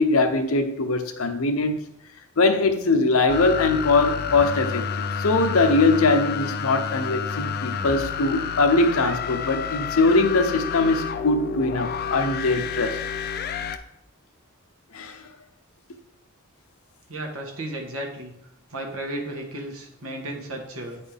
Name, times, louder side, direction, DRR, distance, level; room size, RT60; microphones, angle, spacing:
voice 1, 0.0-1.8 2.4-13.0 14.9-15.2, left 3 dB, 80° left, 0.8 m, -21 dB
sound 1, 3.3-13.8, left 6 dB, 45° left, 0.4 m, -30 dB
voice 2, 17.1-18.3 18.7-21.0, right 1 dB, 80° right, 1.4 m, -34 dB
8.9 x 4.3 x 3.5 m
head